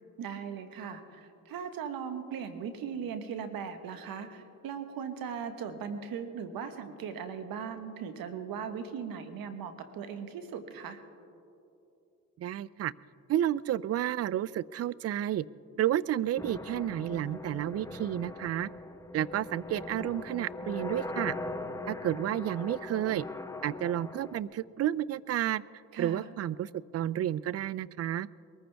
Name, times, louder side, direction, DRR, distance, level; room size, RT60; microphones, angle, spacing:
voice 1, 0.2-11.0 25.9-26.3, right 7 dB, 70° right, 8 dB, 1.3 m, -38 dB
voice 2, 12.4-12.9 13.3-15.4 15.8-18.7 19.1-21.3 21.9-23.3 23.6-25.6 26.0-28.3, right 12 dB, 45° right, 21 dB, 0.4 m, -31 dB
sound 1, 16.4-24.4, left 2 dB, 10° left, 0.9 m, -40 dB
22.5 x 14.5 x 3.5 m, 2.7 s
supercardioid pair, 65°, 36 cm